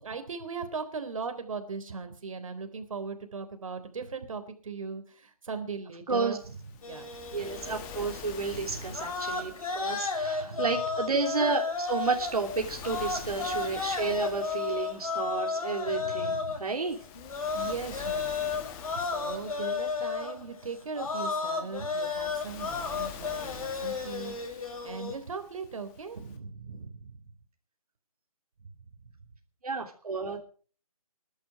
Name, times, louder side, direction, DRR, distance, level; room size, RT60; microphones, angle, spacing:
voice 1, 0.0-6.6 6.9-7.1 8.5-9.0 10.4-10.7 15.9-16.6 17.5-27.2, right 5 dB, 60° right, 7 dB, 3.7 m, -39 dB
voice 2, 6.1-6.4 7.3-17.0 29.6-30.4, right 4 dB, 75° right, 1 dB, 3.2 m, -31 dB
Waves surf, 6.4-26.4, left 8 dB, 15° left, 1.5 m, -48 dB
sound 1, 6.8-8.2 8.6-25.2, left 4 dB, 65° left, 5.6 m, -33 dB
21.5 x 11.5 x 5.1 m, 0.42 s
hypercardioid pair, 155°, 19 cm